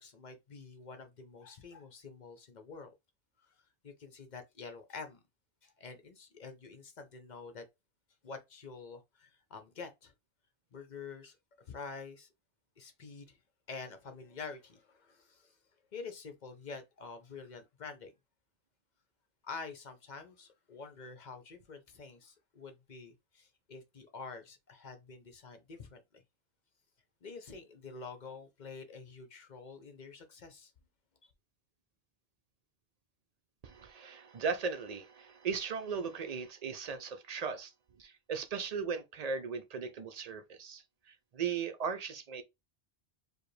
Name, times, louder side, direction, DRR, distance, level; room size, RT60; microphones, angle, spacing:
voice 1, 0.0-2.9 3.4-3.5 3.8-5.2 5.6-7.7 8.2-10.1 10.7-12.3 12.8-13.4 13.7-15.6 15.9-18.1 19.4-26.2 27.2-30.7 31.2-31.3, left 4 dB, 45° left, 0.8 m, -47 dB
voice 2, 33.6-37.7 38.0-40.8 41.3-42.4, right 5 dB, 45° right, 0.5 m, -37 dB
4.8 x 2.2 x 3.2 m
omnidirectional pair, 1.1 m